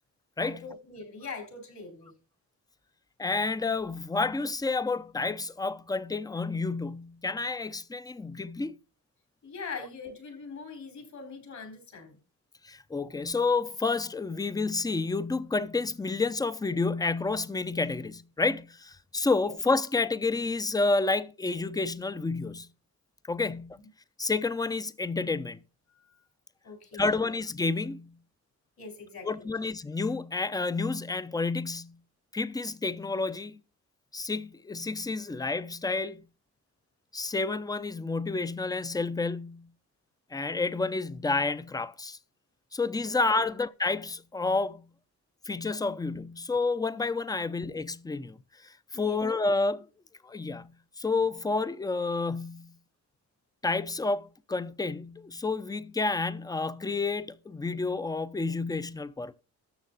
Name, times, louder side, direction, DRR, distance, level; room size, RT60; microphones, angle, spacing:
voice 1, 0.4-2.1 9.4-12.2 19.4-19.6 25.9-26.2 26.6-27.3 28.8-29.5 43.4-43.5 48.9-49.2, left 4 dB, 65° left, 4.3 m, -42 dB
voice 2, 3.2-8.8 12.6-22.7 23.3-23.8 24.2-25.6 26.9-28.2 29.2-32.0 32.3-33.6 34.1-36.2 37.1-39.7 40.3-42.2 42.7-44.8 45.5-48.4 48.6-49.9 50.2-50.7 51.0-52.7 53.6-59.4, left 3 dB, 10° left, 0.6 m, -30 dB
13.0 x 7.0 x 4.0 m
cardioid pair, 120°, 30 cm